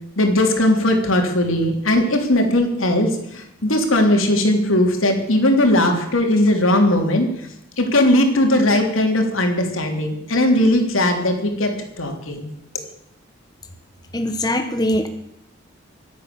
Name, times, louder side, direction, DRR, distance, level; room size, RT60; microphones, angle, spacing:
voice 1, 0.2-7.5 7.8-11.7 12.0-12.5, left 1 dB, 85° left, 3 dB, 3.3 m, -18 dB
voice 2, 14.1-15.1, left 1 dB, 20° left, 6 dB, 1.1 m, -21 dB
24.0 x 8.5 x 6.9 m, 0.78 s
head